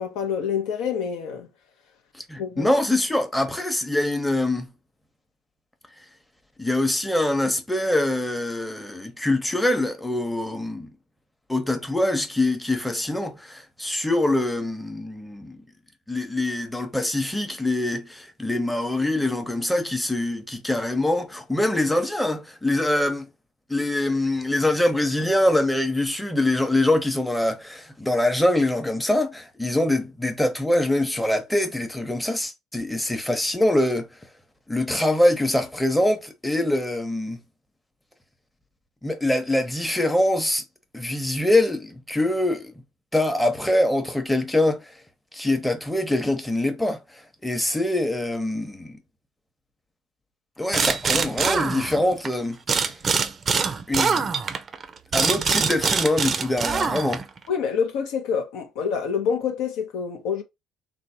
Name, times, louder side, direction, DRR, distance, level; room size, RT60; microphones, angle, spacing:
voice 1, 0.0-1.5 2.4-2.7 57.5-60.4, left 7 dB, 70° left, 0.6 m, -27 dB
voice 2, 2.3-4.7 6.6-10.9 11.5-15.6 16.1-23.3 23.7-34.1 34.7-37.4 39.0-40.6 40.9-42.7 43.1-44.9 45.3-47.0 47.4-49.0 50.6-52.9 53.9-54.2 55.1-57.2, left 1 dB, 5° left, 0.8 m, -24 dB
sound 1, 50.7-52.3 52.7-57.4, right 5 dB, 40° right, 0.4 m, -24 dB
3.1 x 2.1 x 2.7 m
hypercardioid pair, 60°, 0 cm